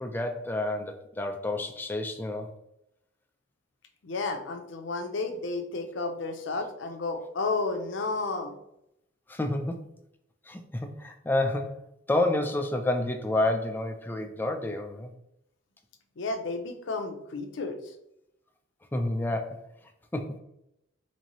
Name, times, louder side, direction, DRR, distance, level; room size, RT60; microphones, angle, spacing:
voice 1, 0.0-2.5 9.3-9.8 10.5-11.8 12.1-15.1 18.9-19.6 20.1-20.4, left 1 dB, 10° left, 5 dB, 0.4 m, -29 dB
voice 2, 4.0-8.5 16.2-17.9, left 3 dB, 70° left, 6 dB, 0.6 m, -32 dB
4.3 x 2.7 x 3.0 m, 0.80 s
head